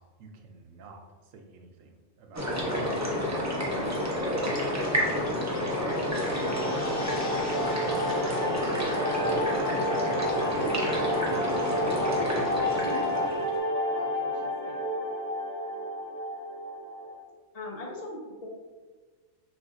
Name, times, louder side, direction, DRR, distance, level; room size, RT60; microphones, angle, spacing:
voice 1, 0.2-1.0 1.3-3.5, right 3 dB, 80° right, 4 dB, 1.0 m, -51 dB
sound 1, 2.3-13.6, equal, 20° right, 0.5 m, -29 dB
voice 2, 3.7-4.5 4.9-7.3 8.5-13.4 13.9-15.2, left 1 dB, 75° left, -2 dB, 0.3 m, -42 dB
sound 2, 4.5-11.0 11.3-11.4, left 2 dB, 60° left, 1.1 m, -45 dB
sound 3, 6.1-17.2, left 1 dB, 40° right, 0.9 m, -31 dB
voice 3, 17.5-18.5, left 2 dB, 40° left, -1 dB, 0.6 m, -39 dB
6.2 x 2.6 x 2.5 m, 1.4 s
omnidirectional pair, 1.3 m